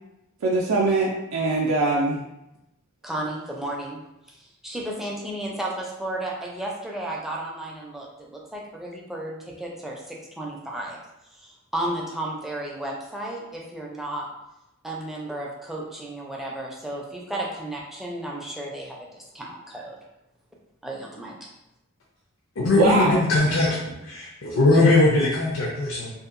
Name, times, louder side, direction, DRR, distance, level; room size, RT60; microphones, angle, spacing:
voice 1, 0.4-2.2 22.8-23.2 23.7-23.8, right 2 dB, 80° right, -3 dB, 0.4 m, -22 dB
voice 2, 3.0-4.0 4.3-11.0 11.3-14.3 14.8-20.0 20.8-21.5, right 1 dB, ahead, -3 dB, 0.4 m, -33 dB
voice 3, 22.6-23.8 24.1-26.1, left 2 dB, 70° left, -4 dB, 0.5 m, -20 dB
2.7 x 2.2 x 2.5 m, 0.89 s
head